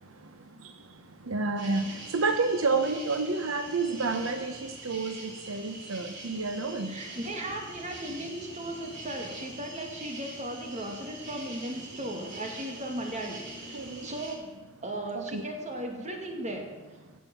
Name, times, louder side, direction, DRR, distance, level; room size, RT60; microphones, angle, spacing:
voice 1, 1.3-1.8 2.1-5.2 5.5-7.0 13.7-14.1 15.1-15.4, right 3 dB, 85° right, 7 dB, 1.0 m, -29 dB
sound 1, 1.6-14.4, right 2 dB, 60° right, 3.3 m, -44 dB
voice 2, 6.9-16.7, right 1 dB, 35° right, 3 dB, 2.4 m, -37 dB
16.5 x 7.5 x 7.3 m, 1.2 s
head